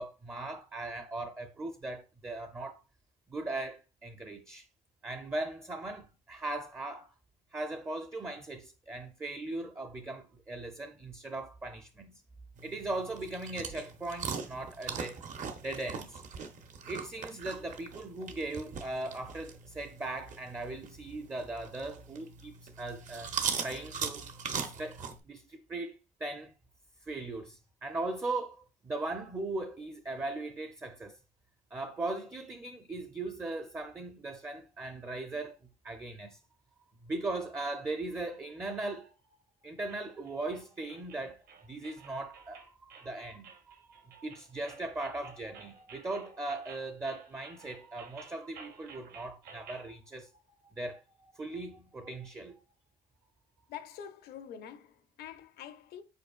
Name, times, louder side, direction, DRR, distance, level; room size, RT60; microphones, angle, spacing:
voice 1, 0.0-2.8 3.3-4.7 5.0-7.1 7.5-12.2 12.6-15.2 15.6-16.2 16.9-23.3 23.6-25.0 25.3-26.5 27.1-31.2 31.7-35.5 35.8-36.4 37.0-39.1 39.6-50.3 50.7-51.0 51.3-52.6, right 2 dB, 15° right, 0.5 m, -39 dB
sound 1, 12.6-25.2, right 6 dB, 50° right, 0.7 m, -40 dB
sound 2, 39.9-49.9, right 5 dB, 70° right, 1.1 m, -53 dB
voice 2, 53.7-56.0, left 9 dB, 70° left, 0.6 m, -46 dB
5.2 x 4.2 x 2.3 m
cardioid pair, 110°, 17 cm